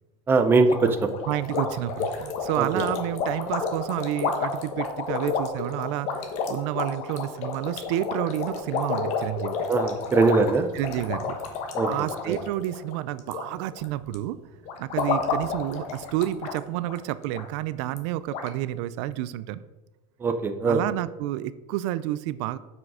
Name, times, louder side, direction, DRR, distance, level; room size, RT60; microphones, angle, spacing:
voice 1, 0.3-1.1 2.6-2.8 9.7-10.7 11.8-11.9 12.3-12.4 20.2-20.8, right 4 dB, 15° right, 7 dB, 0.6 m, -21 dB
sound 1, 0.7-13.4 13.7-14.1 14.7-16.6 16.9-17.0 17.3-17.4 18.0-18.1 18.3-18.5, left 5 dB, 50° left, 1.3 m, -30 dB
voice 2, 1.3-6.1 6.5-9.6 10.7-11.4 11.9-14.4 14.8-19.6 20.7-22.6, right 14 dB, 75° right, 15 dB, 0.5 m, -30 dB
7.4 x 6.3 x 4.9 m, 1.1 s
cardioid pair, 170°, 15 cm